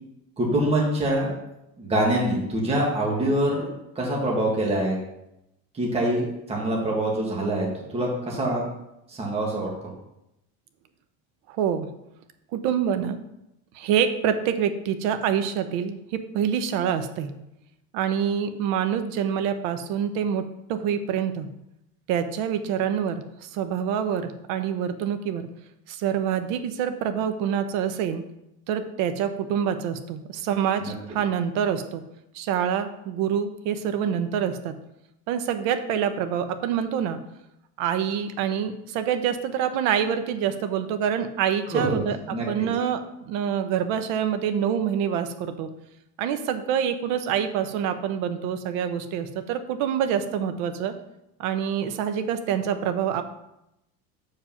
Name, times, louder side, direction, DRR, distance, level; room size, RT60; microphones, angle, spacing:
voice 1, 0.4-1.3 1.8-5.0 5.7-8.6 9.1-9.7 30.8-30.9 41.7-42.7, right 1 dB, 15° right, -2 dB, 1.6 m, -25 dB
voice 2, 11.5-11.9 12.5-13.2 13.7-17.3 17.9-20.4 20.7-21.5 22.1-25.5 25.9-28.2 28.7-32.0 32.3-34.7 35.3-37.2 37.8-43.0 43.3-45.7 46.2-50.9 51.4-53.2, right 8 dB, 65° right, 9 dB, 0.9 m, -26 dB
7.2 x 5.0 x 5.7 m, 0.86 s
cardioid pair, 165°, 35 cm